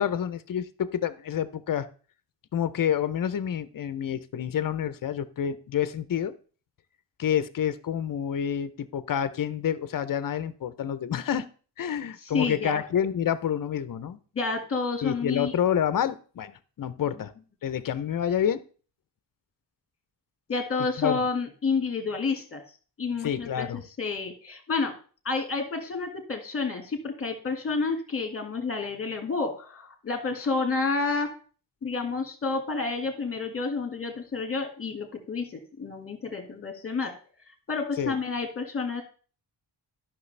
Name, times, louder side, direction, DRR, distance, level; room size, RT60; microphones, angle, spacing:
voice 1, 0.0-1.9 2.5-6.3 7.2-11.4 11.8-14.2 15.0-17.3 17.6-18.6 21.0-21.2 23.2-23.8 38.0-38.1, left 9 dB, 50° left, 14 dB, 0.6 m, -28 dB
voice 2, 12.3-12.8 14.4-15.5 20.5-22.6 23.0-23.7 24.0-25.0 25.3-31.3 31.8-37.1 37.7-39.0, left 4 dB, 30° left, 5 dB, 1.7 m, -29 dB
12.0 x 6.0 x 3.3 m, 0.39 s
wide cardioid pair, 160°, 43 cm